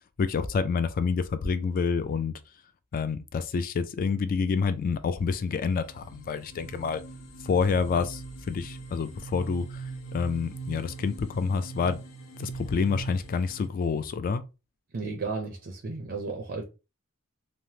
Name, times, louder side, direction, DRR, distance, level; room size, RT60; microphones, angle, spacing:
voice 1, 0.2-2.3 2.9-7.0 7.4-9.8 10.1-12.0 12.4-14.4, left 5 dB, 45° left, 0.3 m, -28 dB
sound 1, 5.2-13.7, right 3 dB, 90° left, 0.6 m, -41 dB
voice 2, 14.9-16.6, right 4 dB, 50° right, 0.5 m, -33 dB
3.2 x 2.0 x 2.8 m
head